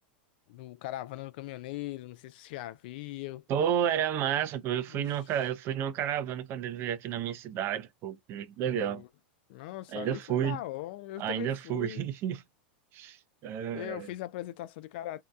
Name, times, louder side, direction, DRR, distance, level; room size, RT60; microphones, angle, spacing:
voice 1, 0.5-3.4 4.9-5.1 8.7-9.1 9.5-12.1 13.7-15.2, left 15 dB, 65° left, 0.4 m, -40 dB
voice 2, 3.5-9.0 9.9-10.6 11.2-12.4 12.9-13.2 13.4-14.1, right 9 dB, 45° right, 0.5 m, -31 dB
2.7 x 2.1 x 2.2 m
hypercardioid pair, 110°, 6 cm